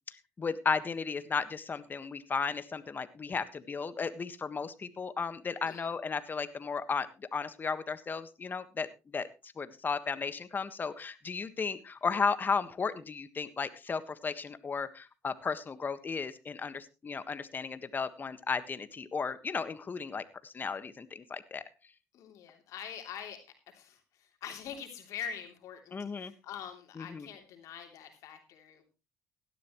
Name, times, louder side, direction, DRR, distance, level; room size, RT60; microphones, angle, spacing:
voice 1, 0.4-7.1 7.3-8.9 9.1-9.3 9.6-21.6 25.9-26.3 27.0-27.3, left 5 dB, 35° left, 12 dB, 1.5 m, -34 dB
voice 2, 22.1-28.8, left 8 dB, 70° left, 5 dB, 3.2 m, -44 dB
17.0 x 11.5 x 3.1 m, 0.28 s
supercardioid pair, 80°, 6 cm